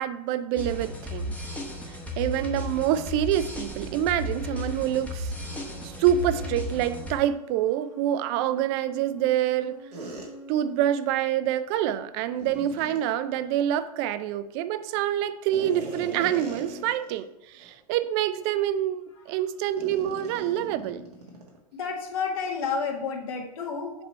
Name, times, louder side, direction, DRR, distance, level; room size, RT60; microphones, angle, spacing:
voice 1, 0.0-1.3 2.2-5.3 5.8-9.8 10.5-19.0 19.3-21.1, right 11 dB, 40° right, 12 dB, 0.5 m, -26 dB
sound 1, 0.6-7.1, equal, 5° left, 1.0 m, -34 dB
sound 2, 5.3-11.2, equal, 40° left, 1.6 m, -47 dB
sound 3, 9.9-10.3 12.3-13.0 15.5-17.2 17.6-17.7 18.3-18.5 19.8-21.6, right 2 dB, 85° right, 1.6 m, -40 dB
voice 2, 21.7-23.9, left 5 dB, 60° left, -1 dB, 1.6 m, -30 dB
6.8 x 3.0 x 5.4 m, 0.90 s
hypercardioid pair, 105°, 20 cm